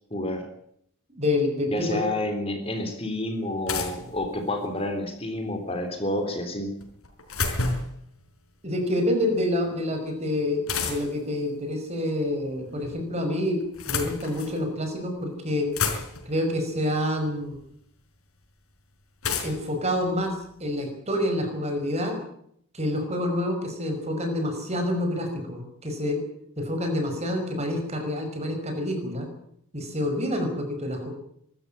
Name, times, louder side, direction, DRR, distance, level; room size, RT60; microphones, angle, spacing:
voice 1, 0.1-0.5 1.7-6.7, left 1 dB, 25° left, 5 dB, 3.6 m, -29 dB
voice 2, 1.1-2.0 8.6-15.7 16.3-17.6 19.4-22.2 22.7-26.2 26.6-29.3 29.7-31.1, left 1 dB, 30° right, 5 dB, 5.6 m, -27 dB
sound 1, 2.6-2.7 3.7-4.8 6.8-8.0 10.7-11.3 12.4-13.0 13.6-14.6 15.2-15.3 15.5-16.4 17.5-17.6 19.2-20.8, left 4 dB, 75° left, 4.9 m, -31 dB
25.0 x 13.5 x 8.8 m, 0.70 s
head